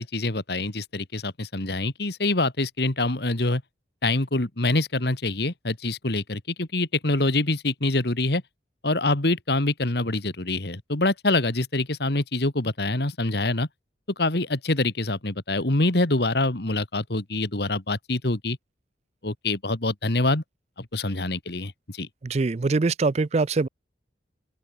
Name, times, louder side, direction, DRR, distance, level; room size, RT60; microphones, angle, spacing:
voice 1, 0.0-3.6 4.0-8.4 8.8-13.7 14.2-18.6 19.2-20.4 20.8-22.1, left 2 dB, 60° left, 2.1 m, -25 dB
voice 2, 22.2-23.7, right 3 dB, 35° right, 0.4 m, -23 dB
open air
head